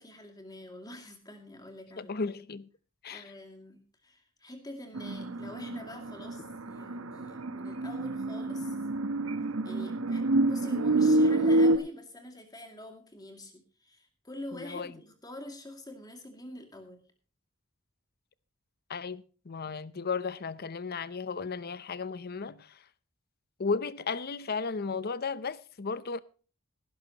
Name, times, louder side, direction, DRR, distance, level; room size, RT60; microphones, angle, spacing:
voice 1, 0.0-2.1 3.1-8.8 9.6-17.0, left 1 dB, 20° left, 2.4 m, -46 dB
voice 2, 2.0-2.7 3.0-3.2 14.5-14.9 18.9-22.8 23.6-26.2, left 4 dB, 45° left, 0.7 m, -34 dB
sound 1, 4.9-11.8, right 2 dB, 75° right, 1.0 m, -27 dB
18.0 x 11.5 x 2.9 m
head